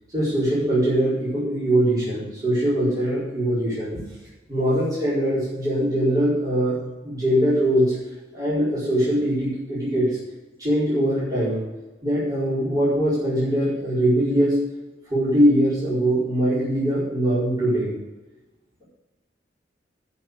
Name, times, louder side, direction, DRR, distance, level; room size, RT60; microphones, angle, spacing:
voice 1, 0.1-4.0 4.5-6.8 7.0-7.9 8.3-10.2 10.6-11.6 12.0-14.6 15.1-17.9, right 1 dB, 20° right, -10 dB, 4.8 m, -22 dB
10.5 x 6.3 x 8.1 m, 1.1 s
head